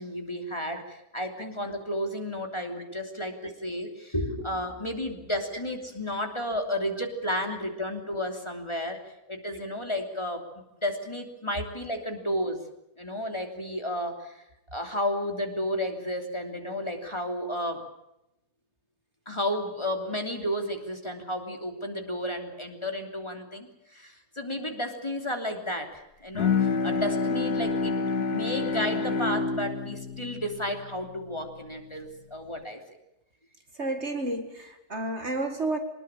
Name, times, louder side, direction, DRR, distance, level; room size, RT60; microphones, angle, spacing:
voice 1, 0.0-9.0 9.3-12.6 13.0-14.4 14.7-17.8 19.3-32.8, left 1 dB, 20° left, 3 dB, 3.1 m, -32 dB
Bowed string instrument, 26.3-31.8, left 4 dB, 90° left, 2.3 m, -28 dB
voice 2, 33.8-35.8, right 2 dB, 45° right, 7 dB, 2.2 m, -31 dB
23.5 x 20.0 x 7.4 m, 0.87 s
omnidirectional pair, 1.6 m